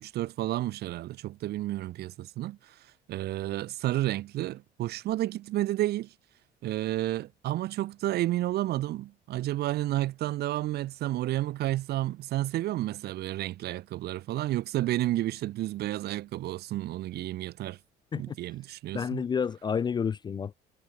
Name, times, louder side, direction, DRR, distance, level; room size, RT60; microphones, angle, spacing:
voice 1, 0.0-2.7 3.1-6.1 6.6-17.8 18.1-19.2, right 15 dB, 70° right, 1.4 m, -31 dB
voice 2, 18.9-20.6, left 6 dB, 25° left, 0.3 m, -30 dB
cardioid pair, 110°, 17 cm